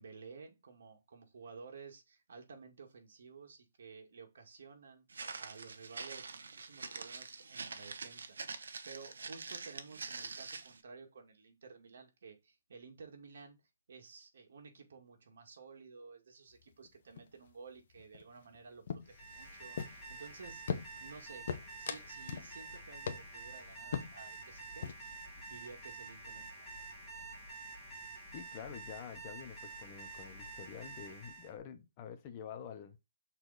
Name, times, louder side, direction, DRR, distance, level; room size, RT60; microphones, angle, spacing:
voice 1, 0.0-13.6 13.9-21.5 21.8-25.2 25.4-26.7, right 5 dB, 60° right, 2.2 m, -54 dB
Walk footsteps, 5.1-10.8, right 4 dB, 90° right, 1.1 m, -45 dB
sound 1, 16.5-16.9 17.2-17.5 17.8-18.6 18.9-20.2 20.7-21.1 21.5-22.5 22.8-22.9 23.1-23.5 23.9-24.4 24.7-25.1, left 7 dB, 45° left, 0.9 m, -40 dB
Alarm, 19.0-31.5, right 3 dB, 5° left, 2.3 m, -49 dB
voice 2, 28.3-33.0, left 8 dB, 25° left, 0.9 m, -48 dB
6.7 x 4.3 x 4.1 m
hypercardioid pair, 170°, 0 cm